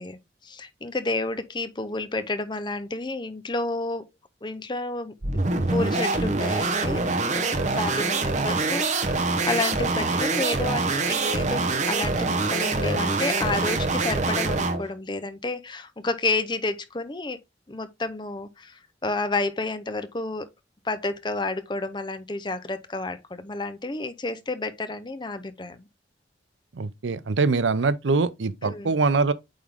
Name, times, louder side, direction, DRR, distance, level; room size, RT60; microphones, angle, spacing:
voice 1, 0.0-4.1 4.4-5.1 5.7-7.0 7.3-7.5 7.7-17.4 17.7-20.5 20.8-25.9 28.6-28.9, left 2 dB, 25° left, 0.7 m, -30 dB
sound 1, 5.2-14.9, right 3 dB, 40° right, 0.9 m, -25 dB
voice 2, 26.7-29.3, right 4 dB, 85° right, 0.6 m, -23 dB
8.7 x 3.7 x 3.5 m
head